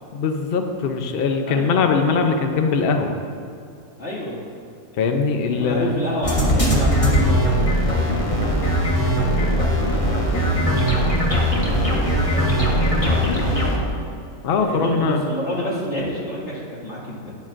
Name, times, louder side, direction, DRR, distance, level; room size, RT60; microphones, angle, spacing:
voice 1, 0.1-3.2 5.0-5.9 14.4-15.2, left 4 dB, 75° left, 5 dB, 0.5 m, -21 dB
voice 2, 1.5-1.8 4.0-4.4 5.4-8.6 9.3-13.9 14.6-17.3, equal, 45° left, -6 dB, 2.3 m, -30 dB
sound 1, 6.2-13.8, equal, 20° left, 1.1 m, -19 dB
12.0 x 9.7 x 2.5 m, 2.3 s
omnidirectional pair, 1.8 m